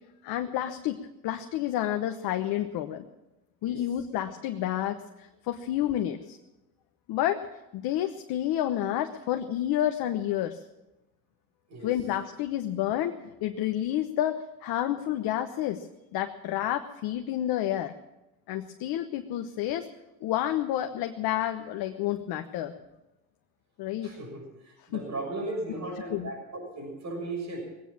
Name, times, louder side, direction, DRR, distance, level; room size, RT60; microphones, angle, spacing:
voice 1, 0.2-3.0 3.6-6.4 7.1-7.5 7.7-10.6 11.8-17.9 18.5-19.9 20.2-22.7 23.8-24.1 24.9-25.0 26.1-26.3, left 12 dB, 55° left, 6 dB, 1.1 m, -30 dB
voice 2, 24.0-27.6, right 2 dB, 40° right, 3 dB, 6.6 m, -36 dB
20.5 x 9.2 x 7.4 m, 0.96 s
hypercardioid pair, 80°, 44 cm